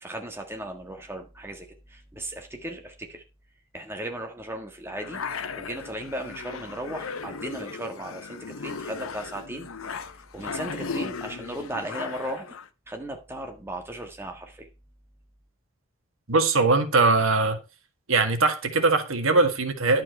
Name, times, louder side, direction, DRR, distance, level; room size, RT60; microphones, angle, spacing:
voice 1, 0.0-3.2 3.7-5.2 5.5-9.7 10.3-12.6 12.9-14.7, right 1 dB, 10° right, 1.6 m, -36 dB
sound 1, 5.0-12.7, left 5 dB, 90° left, 0.8 m, -36 dB
voice 2, 16.3-17.6 18.1-20.0, right 3 dB, 85° right, 1.7 m, -21 dB
11.0 x 7.5 x 4.4 m
head